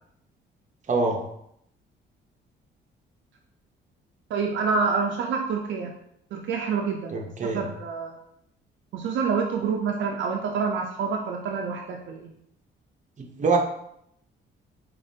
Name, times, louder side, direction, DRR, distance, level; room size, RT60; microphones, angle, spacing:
voice 1, 0.9-1.2 7.1-7.7 13.4-13.6, right 4 dB, 40° right, 2 dB, 0.8 m, -24 dB
voice 2, 4.3-5.9 6.3-8.1 8.9-12.3, right 5 dB, 75° right, 2 dB, 0.5 m, -27 dB
4.9 x 2.5 x 2.7 m, 0.73 s
cardioid pair, 90°, 20 cm